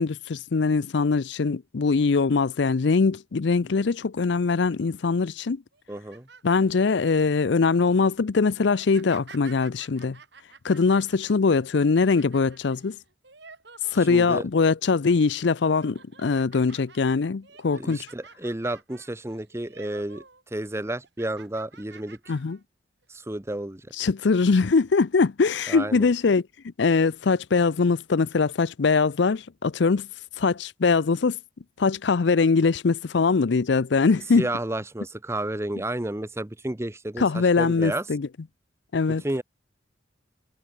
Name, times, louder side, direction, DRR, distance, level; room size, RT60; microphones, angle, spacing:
voice 1, 0.0-5.6 6.4-10.2 10.6-13.0 13.9-18.1 22.3-22.6 24.0-26.4 26.8-30.1 30.4-31.4 31.8-34.5 37.2-38.3 38.9-39.2, left 4 dB, 65° left, 0.5 m, -22 dB
sound 1, 5.7-7.1 7.6-7.9 8.7-14.4 14.8-15.3 15.7-20.4 20.7-22.6 23.0-23.2 23.9-24.4, right 5 dB, 60° right, 4.2 m, -51 dB
voice 2, 5.9-6.3 14.1-14.5 17.7-20.2 20.5-22.2 23.1-23.9 25.7-26.1 34.4-37.2 37.6-38.0 39.2-39.4, right 1 dB, 15° right, 0.7 m, -31 dB
head